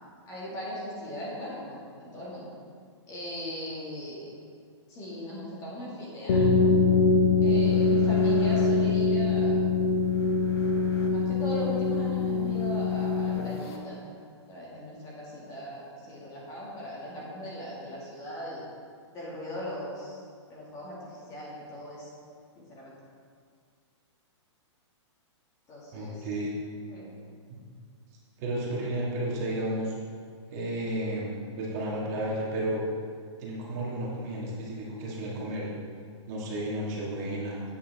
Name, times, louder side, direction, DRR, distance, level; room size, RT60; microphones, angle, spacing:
voice 1, 0.3-2.5 3.1-4.3 4.9-6.9 7.4-9.6 11.1-14.0 14.5-18.6 19.1-20.2 20.5-22.1 22.6-23.0 25.7-26.3 26.9-27.2, equal, 20° left, -6 dB, 2.0 m, -38 dB
sound 1, 6.3-13.8, left 4 dB, 55° left, 1.0 m, -24 dB
voice 2, 25.9-26.5 28.4-30.0 30.5-32.8 33.4-35.7 36.3-37.6, right 1 dB, 35° right, -4 dB, 1.7 m, -32 dB
8.6 x 8.4 x 3.5 m, 2.1 s
hypercardioid pair, 155°, 16 cm